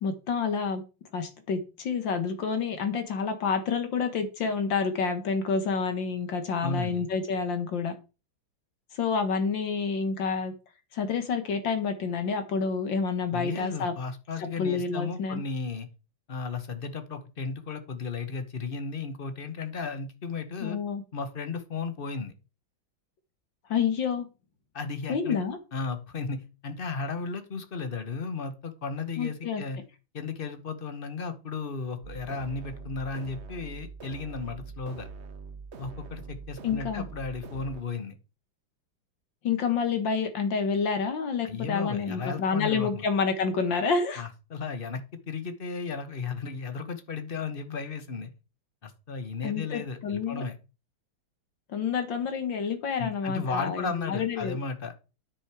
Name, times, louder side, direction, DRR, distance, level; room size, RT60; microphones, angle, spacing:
voice 1, 0.0-0.8 1.1-7.9 8.9-10.5 10.9-13.9 14.6-15.4 20.6-21.0 23.7-24.3 25.1-25.6 29.2-29.6 36.6-37.0 39.4-44.2 49.4-50.4 51.7-54.6, left 5 dB, 65° left, 8 dB, 2.2 m, -28 dB
voice 2, 6.6-7.1 13.3-15.9 16.3-20.8 21.1-22.3 24.7-25.4 25.7-29.8 30.1-35.1 35.8-38.1 41.4-43.0 44.2-48.3 48.8-50.5 53.0-54.9, left 4 dB, 40° left, 9 dB, 0.9 m, -34 dB
sound 1, 32.0-37.8, right 5 dB, 45° right, 0.9 m, -43 dB
9.9 x 6.3 x 4.8 m, 0.32 s
omnidirectional pair, 2.2 m